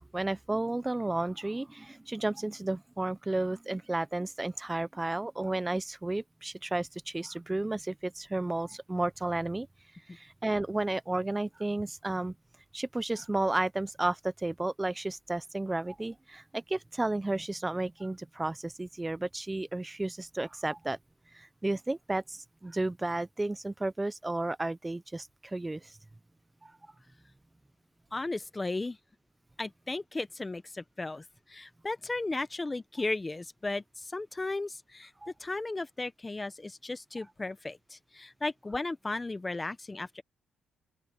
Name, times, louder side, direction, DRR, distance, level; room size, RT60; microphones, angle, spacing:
voice 1, 0.0-9.7 10.1-12.3 12.7-21.0 21.3-26.0 26.6-26.7 35.2-35.3, right 2 dB, 15° right, 0.8 m, -32 dB
voice 2, 28.1-29.0 29.6-35.1 35.4-40.2, left 2 dB, 20° left, 1.3 m, -35 dB
open air
cardioid pair, 90°, 0 cm